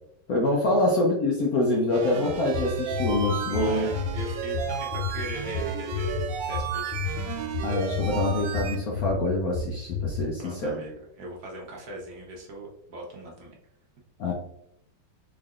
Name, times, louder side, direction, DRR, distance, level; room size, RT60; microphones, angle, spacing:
voice 1, 0.3-3.9 7.6-10.8 14.2-14.3, left 2 dB, 70° left, -1 dB, 0.9 m, -25 dB
sound 1, 1.9-8.8, right 6 dB, 85° right, 1.4 m, -34 dB
sound 2, 2.3-10.2, left 4 dB, 85° left, 1.4 m, -32 dB
voice 2, 3.5-7.0 10.4-13.5, right 2 dB, 60° right, -1 dB, 1.2 m, -39 dB
3.7 x 3.6 x 2.4 m, 0.78 s
omnidirectional pair, 2.1 m